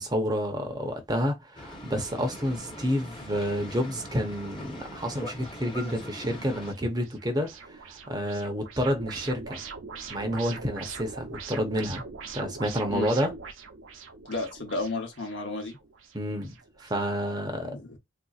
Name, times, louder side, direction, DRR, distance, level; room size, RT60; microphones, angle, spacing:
voice 1, 0.0-9.6 10.1-12.0 12.3-13.3 16.1-16.5 16.8-17.7, equal, 20° right, 0.7 m, -29 dB
Boat Water vehicle, 1.6-6.7, equal, 25° left, 0.9 m, -42 dB
sound 1, 5.4-16.9, right 5 dB, 90° right, 0.7 m, -43 dB
voice 2, 14.3-15.8 17.6-18.0, left 2 dB, 65° left, 1.0 m, -33 dB
3.6 x 2.7 x 2.4 m
head